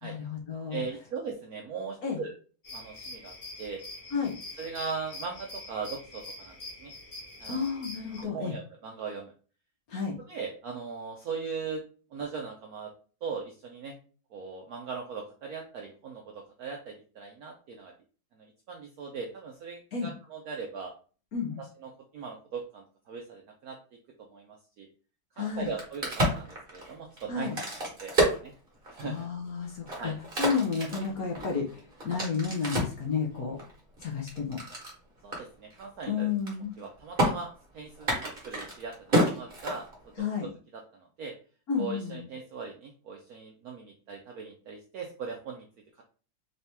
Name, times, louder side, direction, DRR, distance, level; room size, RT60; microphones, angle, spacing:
voice 1, 0.0-0.8 2.0-2.2 4.1-4.3 7.5-8.5 9.9-10.1 19.9-20.1 21.3-21.6 25.4-25.7 27.3-27.6 29.0-33.6 34.0-34.6 36.1-36.7 40.2-40.5 41.7-42.3, left 6 dB, 65° left, 0 dB, 1.0 m, -31 dB
voice 2, 0.7-2.3 2.7-3.8 4.6-6.9 7.4-7.6 8.2-9.3 10.3-11.8 12.1-12.9 13.2-14.0 14.3-17.9 18.3-20.9 21.6-23.8 24.2-24.9 25.4-27.5 27.8-28.5 28.9-29.2 30.0-30.2 35.2-36.3 36.8-39.9 40.4-41.3 41.8-45.6, right 5 dB, 75° right, 2 dB, 0.8 m, -39 dB
sound 1, 2.6-8.2, left 2 dB, 40° left, 1.5 m, -44 dB
Crack, 25.5-29.2 29.7-33.0 33.6-34.9 35.3-35.4 35.7-36.0 36.3-36.8 37.2-37.3 37.9-40.2, right 1 dB, 30° right, 1.4 m, -29 dB
4.0 x 2.8 x 3.4 m, 0.39 s
omnidirectional pair, 2.2 m